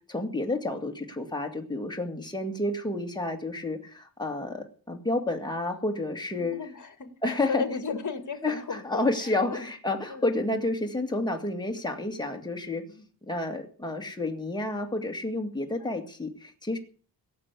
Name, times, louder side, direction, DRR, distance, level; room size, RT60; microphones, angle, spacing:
voice 1, 0.1-6.6 7.2-7.6 8.4-12.8 13.2-16.8, left 2 dB, 10° left, 3 dB, 2.2 m, -30 dB
voice 2, 6.4-9.7 10.1-10.2 12.9-13.1 15.8-15.9, left 5 dB, 50° left, 9 dB, 2.0 m, -35 dB
18.0 x 7.7 x 8.3 m, 0.42 s
wide cardioid pair, 165°, 39 cm